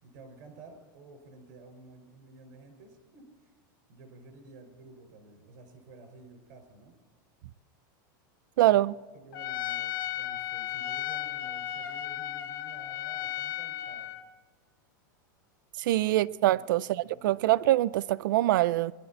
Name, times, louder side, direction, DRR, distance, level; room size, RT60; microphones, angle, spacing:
voice 1, 0.0-3.5 3.9-7.0 8.6-8.8 9.1-14.1 15.8-16.0 16.5-16.8 17.1-17.5 17.8-17.9, right 3 dB, 55° right, 5.4 m, -52 dB
voice 2, 8.6-8.9 15.8-18.9, right 15 dB, 75° right, 0.4 m, -24 dB
Trumpet, 9.3-14.2, left 12 dB, 80° left, 1.3 m, -35 dB
22.0 x 11.5 x 4.3 m
supercardioid pair, 155°, 11 cm